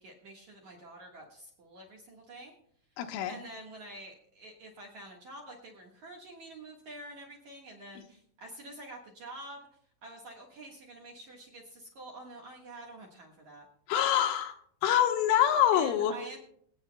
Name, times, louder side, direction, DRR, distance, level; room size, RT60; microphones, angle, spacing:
voice 1, 0.0-2.5 3.3-9.6 10.0-13.7 15.7-16.4, right 2 dB, 65° right, -1 dB, 1.8 m, -47 dB
voice 2, 3.0-3.4 13.9-14.5 14.8-16.1, left 10 dB, 90° left, 5 dB, 3.4 m, -25 dB
25.5 x 8.9 x 2.2 m, 0.64 s
omnidirectional pair, 5.6 m